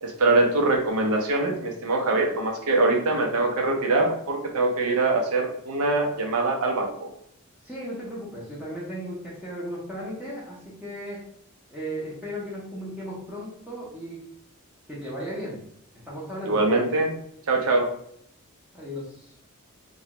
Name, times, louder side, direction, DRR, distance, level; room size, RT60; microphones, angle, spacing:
voice 1, 0.0-7.1 16.4-17.1 17.5-17.8, right 2 dB, 85° right, 2 dB, 0.7 m, -23 dB
voice 2, 7.6-11.2 11.7-14.2 14.9-15.6 16.1-16.6 18.7-19.3, equal, 5° right, -8 dB, 0.6 m, -36 dB
2.9 x 2.3 x 2.9 m, 0.68 s
head